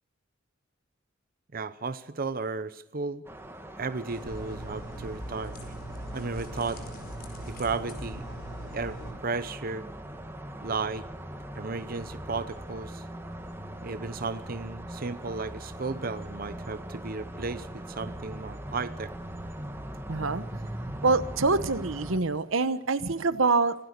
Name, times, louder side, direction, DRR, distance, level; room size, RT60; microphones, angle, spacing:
voice 1, 1.5-3.2 3.8-5.5 6.1-6.8 7.5-8.2 8.7-9.0 9.2-9.9 10.6-11.1 11.5-13.0 13.8-19.1, right 4 dB, 45° right, 12 dB, 0.8 m, -34 dB
sound 1, 3.2-22.2, right 1 dB, 10° right, 1.9 m, -41 dB
sound 2, 4.1-9.1, right 1 dB, 50° left, 4.7 m, -41 dB
voice 2, 20.1-20.4 21.0-23.8, right 3 dB, 80° right, 13 dB, 1.1 m, -25 dB
25.5 x 17.0 x 6.7 m, 0.79 s
head